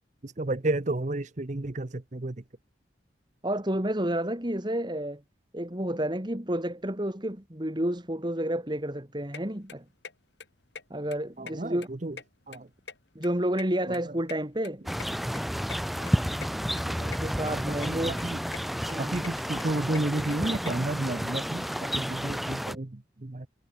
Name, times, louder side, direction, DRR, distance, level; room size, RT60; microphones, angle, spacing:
voice 1, 0.2-2.4 11.4-12.2 12.5-12.7 16.0-16.1 16.9-17.0 17.5-18.4 19.0-23.5, right 2 dB, 40° right, 0.8 m, -32 dB
voice 2, 3.4-5.2 5.5-9.8 10.9-11.9 13.1-14.9 16.7-18.1 18.9-19.2, right 1 dB, 25° right, 2.4 m, -30 dB
sound 1, 9.3-9.4 9.7-10.1 10.4-10.5 10.8-10.9 11.1-11.9 12.1-13.3 13.6-15.1 15.4-15.5 15.7-15.8 16.1-16.2 16.4-16.5 16.8-17.2 17.5-17.9 18.2-18.6 18.9-20.7, left 5 dB, 70° left, 4.1 m, -43 dB
sound 2, 14.9-22.8, equal, ahead, 5.5 m, -31 dB
head